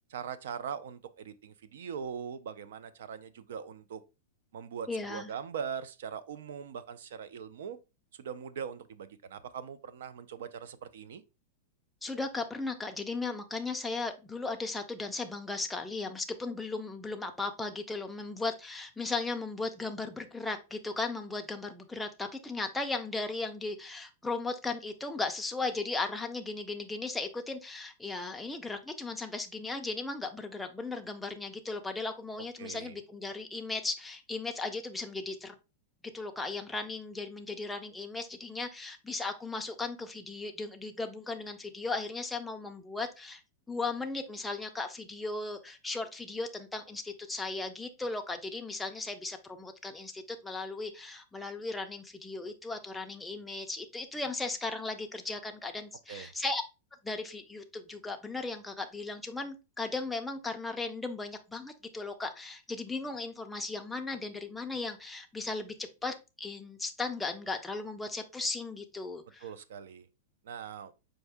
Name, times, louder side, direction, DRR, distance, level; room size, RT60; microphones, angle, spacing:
voice 1, 0.1-4.0 4.5-7.8 8.1-11.2 32.6-33.0 56.1-56.3 69.4-70.1 70.4-70.9, right 7 dB, 70° right, 0.4 m, -41 dB
voice 2, 4.9-5.3 12.0-35.6 36.1-43.4 43.7-56.6 57.0-69.4, left 3 dB, 5° left, 0.3 m, -36 dB
4.6 x 2.6 x 3.4 m
supercardioid pair, 175°, 0 cm